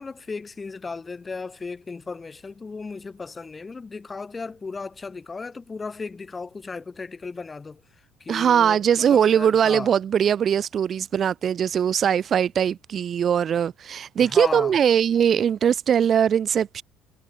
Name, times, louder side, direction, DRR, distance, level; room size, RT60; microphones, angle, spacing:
voice 1, 0.0-7.8 8.2-9.9 14.2-14.8, left 4 dB, 25° left, 0.7 m, -35 dB
voice 2, 8.3-16.8, right 8 dB, 45° right, 0.4 m, -21 dB
hypercardioid pair, 65°, 0 cm